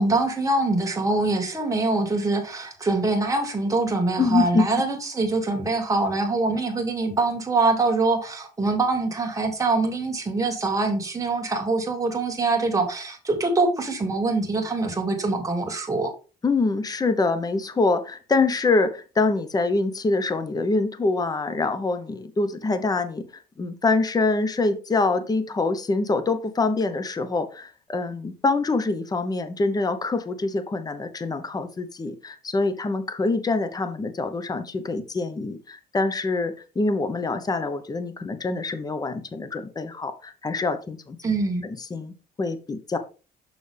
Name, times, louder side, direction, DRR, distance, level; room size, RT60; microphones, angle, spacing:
voice 1, 0.0-16.1 41.2-41.7, right 3 dB, 20° right, 2.3 m, -24 dB
voice 2, 4.2-4.6 16.4-23.2 23.6-41.2 41.6-43.0, left 3 dB, 20° left, 1.0 m, -25 dB
6.6 x 6.4 x 3.4 m
cardioid pair, 110°, 17 cm